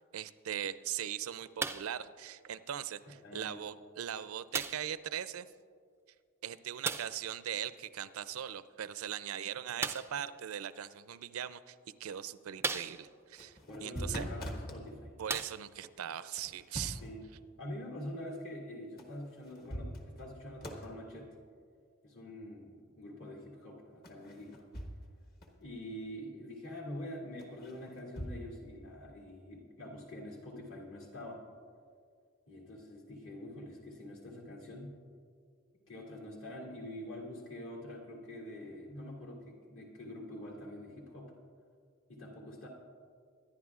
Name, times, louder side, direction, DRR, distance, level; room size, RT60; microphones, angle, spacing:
voice 1, 0.1-5.5 6.4-14.3 15.2-17.0, right 10 dB, 80° right, 14 dB, 0.4 m, -40 dB
sound 1, 1.6-2.0 2.9-3.0 4.5-5.0 6.8-7.2 9.8-10.2 11.2-11.3 11.9-12.0 12.6-13.3 14.6-14.7 15.2-15.9 16.8-16.9, right 4 dB, 10° right, 0.3 m, -37 dB
voice 2, 3.2-3.6 13.7-15.1 17.0-17.3 17.6-21.4 22.0-24.6 25.6-31.4 32.5-35.0 35.9-41.3 42.1-42.7, left 1 dB, 65° left, -3 dB, 2.5 m, -45 dB
sound 2, 13.2-14.8 16.4-17.2 19.0-19.1 19.5-20.3 20.6-20.9 24.0-25.2 25.4-25.5 27.4-28.4, equal, 45° left, 1.3 m, -42 dB
23.5 x 10.5 x 2.4 m, 2.2 s
head